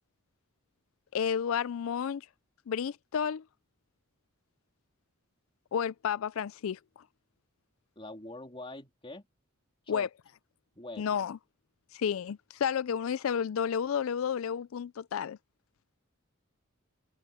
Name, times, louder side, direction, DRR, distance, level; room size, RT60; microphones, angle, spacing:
voice 1, 1.1-2.3 2.7-3.4 5.7-6.8 9.9-10.1 11.0-11.4 11.9-15.4, left 7 dB, 75° left, 0.4 m, -31 dB
voice 2, 7.9-9.3 9.8-10.1 10.7-11.0, left 2 dB, 25° left, 3.3 m, -43 dB
head